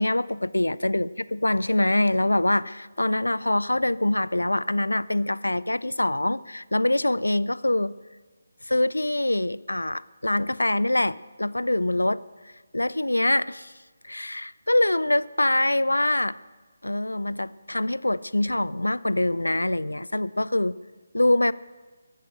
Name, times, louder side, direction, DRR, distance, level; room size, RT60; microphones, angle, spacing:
voice 1, 0.0-7.9 8.7-12.2 12.7-13.7 14.1-16.4 16.8-20.8 21.1-21.5, left 1 dB, 80° left, 20 dB, 0.4 m, -24 dB
15.0 x 11.5 x 6.4 m, 1.3 s
figure-of-eight pair, 150°, 0 cm